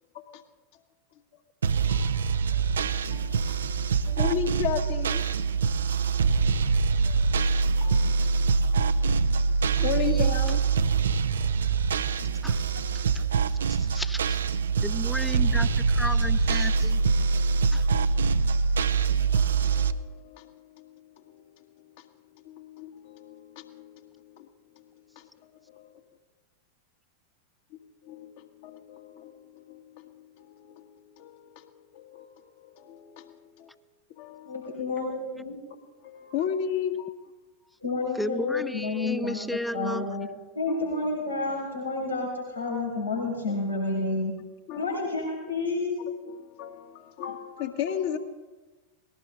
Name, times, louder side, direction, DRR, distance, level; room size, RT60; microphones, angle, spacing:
sound 1, 1.6-19.9, right 5 dB, 65° right, 0.6 m, -24 dB
voice 1, 1.9-2.6 3.1-3.6 4.1-5.2 6.6-6.8 7.0-7.3 7.8-8.2 8.6-8.8 9.0-9.4 9.8-10.6 10.9-11.0 11.4-11.5 19.3-20.9 21.3-21.6 22.0-22.1 22.4-24.5 24.7-24.8 25.1-25.3 25.7-25.9 28.0-33.7 34.2-34.5 36.0-37.2 40.7-40.9 43.5-43.6 44.7-45.0 46.0-48.2, left 9 dB, 50° left, 4 dB, 1.7 m, -36 dB
voice 2, 9.9-10.3 12.4-12.6 12.9-13.2 13.7-14.4 14.8-17.0 17.7-17.8 38.1-40.2, left 1 dB, ahead, 14 dB, 0.7 m, -34 dB
voice 3, 34.4-35.6 37.8-39.4 39.7-40.3 40.5-44.3 44.7-46.0, left 3 dB, 90° left, -6 dB, 4.9 m, -30 dB
20.5 x 17.5 x 3.9 m, 1.2 s
figure-of-eight pair, 90°, 0 cm